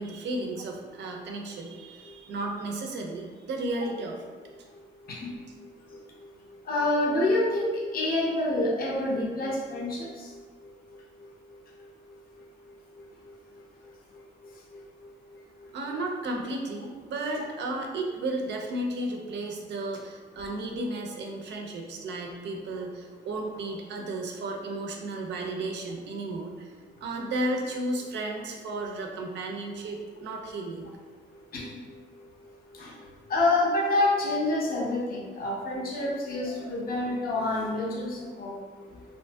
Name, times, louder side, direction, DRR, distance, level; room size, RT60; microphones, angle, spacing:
voice 1, 0.0-4.2 5.5-5.6 15.7-26.7 27.0-30.9, right 2 dB, 60° right, 1 dB, 0.5 m, -33 dB
voice 2, 5.0-5.4 5.9-6.0 6.7-10.4 13.0-13.1 14.7-14.8 31.5-31.8 32.7-33.0 33.3-38.6, left 2 dB, 50° left, -3 dB, 0.6 m, -27 dB
2.8 x 2.5 x 2.2 m, 1.5 s
cardioid pair, 90°, 20 cm